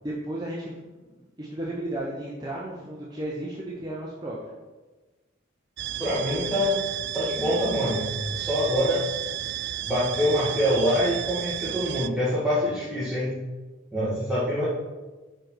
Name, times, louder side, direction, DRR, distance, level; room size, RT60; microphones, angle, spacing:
voice 1, 0.0-4.4, right 1 dB, 20° right, -5 dB, 0.9 m, -34 dB
sound 1, 5.8-12.1, right 12 dB, 55° right, 0.3 m, -32 dB
voice 2, 6.0-6.8 7.1-9.1 9.8-13.3 13.9-14.7, equal, 5° right, -11 dB, 1.9 m, -25 dB
5.3 x 5.2 x 6.1 m, 1.2 s
head